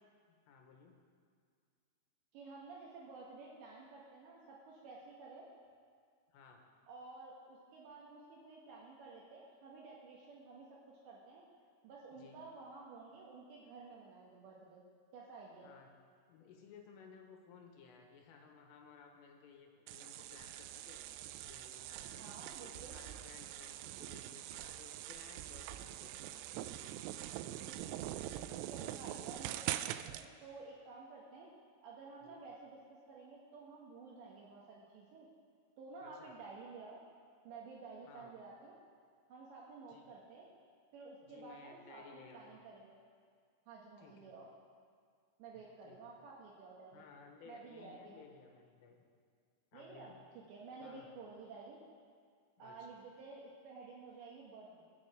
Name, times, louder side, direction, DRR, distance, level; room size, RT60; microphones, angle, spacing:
voice 1, 0.5-0.9 6.3-6.6 12.2-12.4 15.6-15.9 16.3-21.0 21.5-26.9 32.2-32.5 36.0-36.3 38.1-38.3 39.9-40.1 41.3-42.6 44.0-44.3 45.6-46.3 46.9-49.0 49.7-50.1 50.8-51.1 52.6-52.8, left 5 dB, 80° left, 2 dB, 4.0 m, -58 dB
voice 2, 2.3-5.5 6.9-11.4 11.8-14.8 15.1-15.7 22.2-23.0 27.7-31.5 31.8-35.3 35.8-37.0 37.4-38.8 39.3-40.5 40.9-43.0 43.7-44.5 45.4-47.0 47.5-48.2 49.7-51.8 52.6-54.8, right 4 dB, 70° right, -3 dB, 3.3 m, -52 dB
sound 1, 19.9-30.3, right 13 dB, 85° right, 3.1 m, -44 dB
23.5 x 8.8 x 5.0 m, 2.1 s
omnidirectional pair, 5.8 m